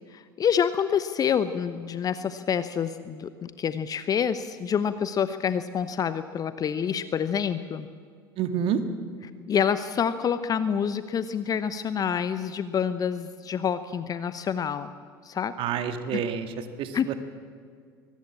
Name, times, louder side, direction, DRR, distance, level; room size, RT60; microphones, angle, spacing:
voice 1, 0.1-7.9 9.5-14.9 15.2-15.6 16.1-16.2 16.9-17.1, left 7 dB, 30° left, 13 dB, 1.0 m, -27 dB
voice 2, 8.4-8.8 15.6-17.2, right 8 dB, 45° right, 9 dB, 2.0 m, -28 dB
23.5 x 19.5 x 8.8 m, 2.1 s
figure-of-eight pair, 75°, 12 cm